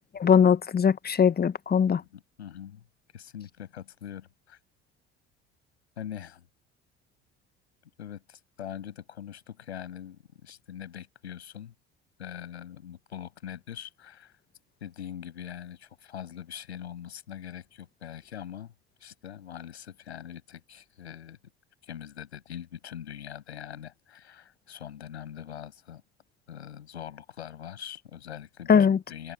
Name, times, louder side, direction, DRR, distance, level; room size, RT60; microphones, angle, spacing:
voice 1, 0.2-2.0 28.7-29.0, left 7 dB, 30° left, 1.7 m, -20 dB
voice 2, 1.9-2.8 3.1-4.6 6.0-6.5 8.0-11.7 12.2-14.3 14.8-18.7 19.0-21.4 21.8-26.0 26.5-29.3, left 9 dB, 80° left, 7.1 m, -42 dB
figure-of-eight pair, 60°, 33 cm